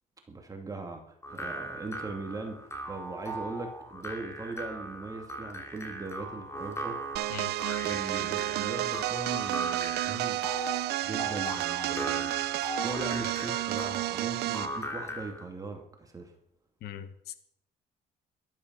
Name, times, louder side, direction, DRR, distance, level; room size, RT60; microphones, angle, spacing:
voice 1, 0.3-7.0 7.8-10.4 11.0-16.3, right 3 dB, 20° right, 3 dB, 2.4 m, -40 dB
sound 1, 1.2-15.4, right 1 dB, 15° left, 3.2 m, -39 dB
sound 2, 7.2-14.8, right 15 dB, 80° right, 0.8 m, -31 dB
voice 2, 16.8-17.3, left 10 dB, 70° left, 11 dB, 1.4 m, -41 dB
14.0 x 12.5 x 5.5 m, 0.72 s
cardioid pair, 110°, 17 cm